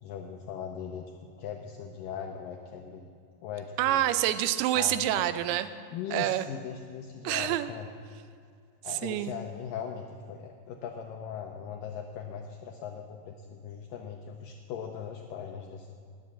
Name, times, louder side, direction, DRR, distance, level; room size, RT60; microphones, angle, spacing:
voice 1, 0.0-1.1 1.4-3.1 3.4-4.0 4.7-5.2 5.9-7.9 8.8-15.9, left 7 dB, 75° left, 3 dB, 2.2 m, -39 dB
voice 2, 3.8-5.7 6.1-6.5 7.2-7.7 8.9-9.3, right 12 dB, 85° right, 12 dB, 2.6 m, -27 dB
19.5 x 7.9 x 7.4 m, 2.3 s
omnidirectional pair, 4.5 m